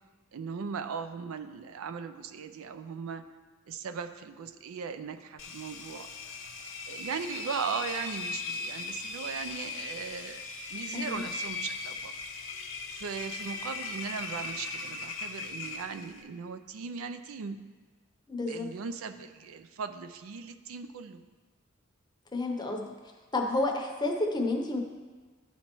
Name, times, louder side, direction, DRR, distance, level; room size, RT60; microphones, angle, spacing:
voice 1, 0.3-3.2 3.7-6.1 6.9-12.2 12.9-17.6 18.5-21.2, right 6 dB, 85° right, 10 dB, 0.4 m, -38 dB
Engine, 5.4-16.2, left 3 dB, 65° left, 0.6 m, -38 dB
voice 2, 18.3-18.7 22.3-22.8 23.3-24.8, left 2 dB, 20° left, 2 dB, 0.7 m, -30 dB
11.5 x 4.3 x 3.0 m, 1.3 s
head